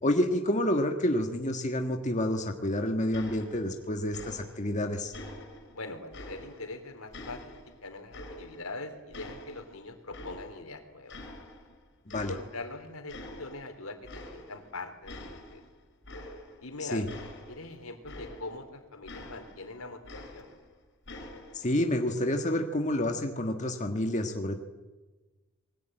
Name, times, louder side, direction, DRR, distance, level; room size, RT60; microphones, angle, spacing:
voice 1, 0.0-5.1 12.1-12.3 16.8-17.1 21.5-24.6, left 1 dB, 35° left, 4 dB, 1.6 m, -29 dB
sound 1, 3.1-3.8 4.1-4.8 5.1-6.8 7.1-8.8 9.1-10.7 11.1-11.8 12.1-12.7 13.1-13.7 14.0-14.7 15.1-18.7 19.1-20.7 21.1-21.7, left 1 dB, 55° left, 5.8 m, -46 dB
voice 2, 5.7-11.2 12.1-15.6 16.6-17.2 17.5-20.5, left 2 dB, 85° left, 7 dB, 3.6 m, -42 dB
27.5 x 21.5 x 9.1 m, 1.2 s
head